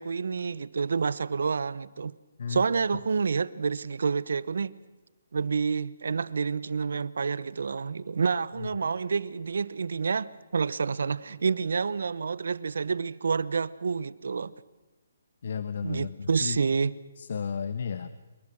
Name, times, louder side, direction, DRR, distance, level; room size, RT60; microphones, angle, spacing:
voice 1, 0.0-2.1 2.5-4.7 5.3-14.5 15.8-16.9, right 5 dB, 70° right, 0.9 m, -28 dB
voice 2, 15.4-16.6 17.2-18.1, left 6 dB, 60° left, 1.2 m, -33 dB
26.5 x 22.5 x 6.3 m
hypercardioid pair, 145°, 0 cm